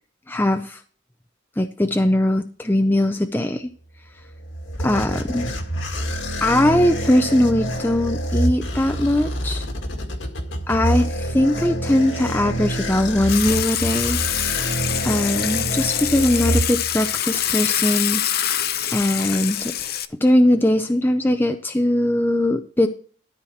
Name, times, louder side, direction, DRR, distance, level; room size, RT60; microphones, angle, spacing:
voice 1, 0.3-0.8 1.6-3.7 4.8-5.4 6.4-9.7 10.7-14.2 15.0-18.2 18.9-19.7 20.2-22.9, left 1 dB, 10° left, 6 dB, 0.5 m, -20 dB
sound 1, 4.2-17.2, right 1 dB, 75° left, 1.9 m, -27 dB
Water / Water tap faucet / Sink (filling or washing), 13.3-20.0, left 11 dB, 50° left, 0.6 m, -25 dB
13.0 x 4.4 x 7.1 m, 0.43 s
head